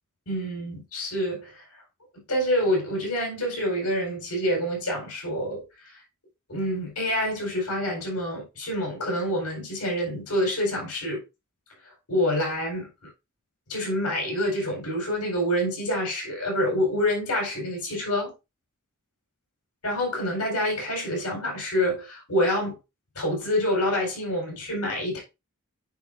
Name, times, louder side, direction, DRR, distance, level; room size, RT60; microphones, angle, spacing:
voice 1, 0.3-1.6 2.3-6.0 6.5-11.2 12.1-13.1 13.7-18.3 19.8-22.8 23.2-25.2, equal, 90° left, 4.2 m, -27 dB
9.4 x 4.6 x 2.6 m
head